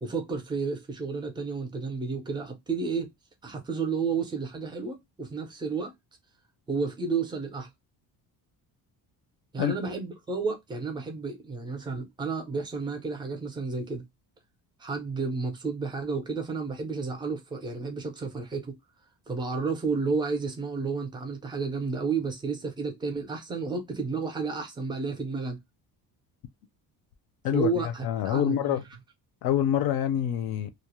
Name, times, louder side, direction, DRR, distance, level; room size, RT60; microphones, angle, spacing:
voice 1, 0.0-3.1 3.4-5.9 6.7-7.7 9.5-14.1 14.8-18.7 19.3-25.6 27.5-28.8, right 4 dB, 10° right, 0.4 m, -31 dB
voice 2, 27.4-28.8 29.4-30.7, left 10 dB, 60° left, 0.5 m, -26 dB
2.4 x 2.1 x 2.8 m
cardioid pair, 175°, 42 cm